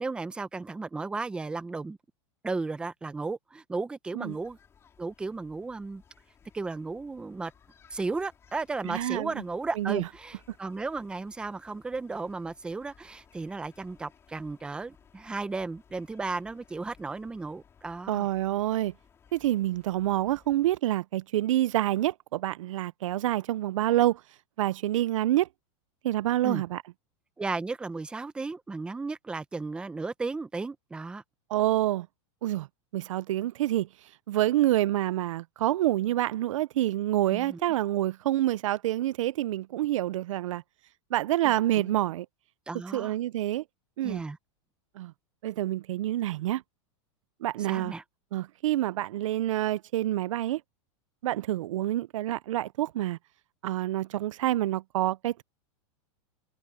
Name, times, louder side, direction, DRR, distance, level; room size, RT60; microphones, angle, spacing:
voice 1, 0.0-2.0 2.4-4.6 5.0-6.0 6.5-7.5 7.9-18.3 26.4-26.6 27.4-31.2 37.3-37.6 41.4-42.0 42.7-43.1 44.0-44.4 47.7-48.0, right 3 dB, 5° right, 0.6 m, -35 dB
sound 1, 4.2-20.8, left 7 dB, 15° left, 4.2 m, -60 dB
voice 2, 8.8-9.3 9.8-10.1 18.1-18.9 19.3-24.2 24.6-25.5 26.0-26.8 31.5-32.1 32.4-32.7 32.9-33.9 34.3-40.6 41.1-42.3 42.9-43.6 44.0-44.2 45.0-45.1 45.4-46.6 47.4-47.9 48.3-50.6 51.2-53.2 53.6-55.4, right 14 dB, 85° right, 0.5 m, -27 dB
supercardioid pair, 160°, 16 cm